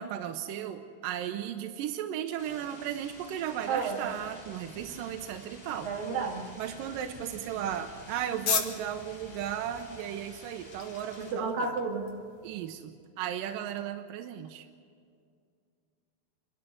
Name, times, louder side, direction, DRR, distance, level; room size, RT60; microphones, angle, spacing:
voice 1, 0.0-5.9 6.6-11.8 12.4-14.7, right 10 dB, 75° right, 6 dB, 2.2 m, -35 dB
sound 1, 2.4-11.3, left 1 dB, 35° left, 4.3 m, -50 dB
voice 2, 3.7-4.0 5.8-6.5 11.2-12.1, right 4 dB, 60° right, 0 dB, 3.9 m, -31 dB
sound 2, 5.6-12.7, left 7 dB, 60° left, 2.6 m, -39 dB
28.0 x 12.5 x 8.2 m, 2.2 s
omnidirectional pair, 4.6 m